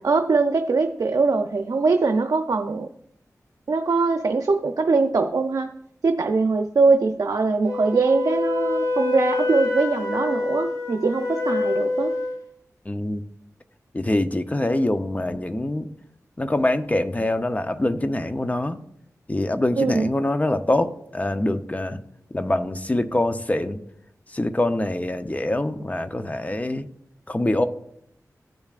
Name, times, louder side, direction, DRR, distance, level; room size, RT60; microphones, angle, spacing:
voice 1, 0.0-2.9 3.7-5.7 6.0-12.1 19.8-20.1, right 3 dB, 70° right, 6 dB, 0.6 m, -22 dB
Wind instrument woodwind instrument, 7.6-12.4, left 3 dB, 70° left, 3.1 m, -26 dB
voice 2, 12.9-13.2 13.9-15.9 16.4-18.8 19.3-22.0 22.3-23.8 24.3-26.9 27.3-27.6, left 1 dB, 25° left, 9 dB, 0.7 m, -24 dB
15.5 x 7.1 x 2.5 m, 0.72 s
wide cardioid pair, 70°, 6 cm